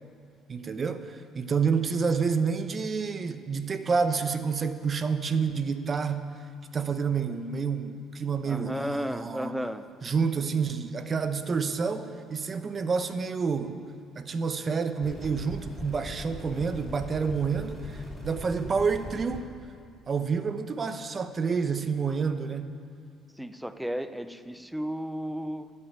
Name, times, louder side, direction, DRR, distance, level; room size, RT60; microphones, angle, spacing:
voice 1, 0.5-6.4 6.7-9.6 10.0-13.8 14.2-19.5 20.1-22.8, right 5 dB, 40° right, 9 dB, 1.0 m, -29 dB
voice 2, 8.5-9.9 23.4-25.7, equal, 5° right, 11 dB, 0.7 m, -33 dB
sound 1, 15.0-19.4, left 1 dB, 15° left, 4.5 m, -41 dB
13.0 x 8.2 x 8.9 m, 2.3 s
cardioid pair, 85°, 0 cm